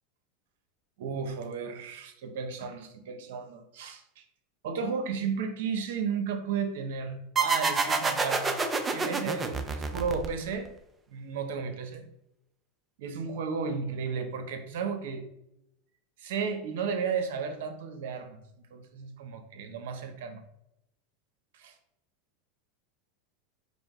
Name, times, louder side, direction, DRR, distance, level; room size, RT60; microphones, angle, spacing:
voice 1, 1.0-4.2 4.6-8.6 8.9-10.7 11.1-12.1 13.0-15.2 16.2-20.4 21.5-21.7, right 5 dB, 75° right, 7 dB, 0.7 m, -34 dB
sound 1, 7.4-10.7, right 4 dB, 20° right, 0.5 m, -28 dB
5.0 x 2.1 x 3.6 m, 0.83 s
supercardioid pair, 120°, 0 cm